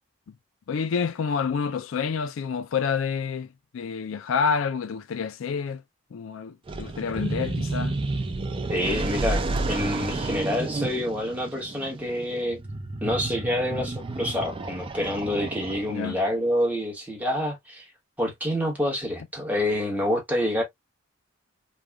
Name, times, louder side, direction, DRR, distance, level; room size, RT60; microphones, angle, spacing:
voice 1, 0.7-3.5 3.7-5.8 6.1-8.0 15.9-16.2, left 6 dB, 70° left, 0.4 m, -28 dB
sound 1, 6.7-16.2, right 2 dB, 25° right, 0.4 m, -31 dB
voice 2, 8.7-12.6 13.0-17.8 18.2-20.6, left 1 dB, 10° right, 1.1 m, -27 dB
3.1 x 2.3 x 2.2 m
head